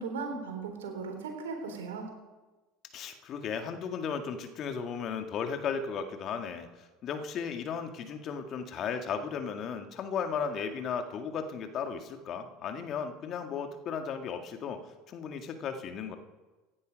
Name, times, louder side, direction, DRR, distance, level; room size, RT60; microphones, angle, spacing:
voice 1, 0.0-2.1, right 4 dB, 85° right, 3 dB, 3.5 m, -37 dB
voice 2, 2.9-14.8 15.1-16.2, left 6 dB, 50° left, 6 dB, 1.8 m, -35 dB
16.0 x 10.5 x 5.3 m, 1.2 s
hypercardioid pair, 80°, 0 cm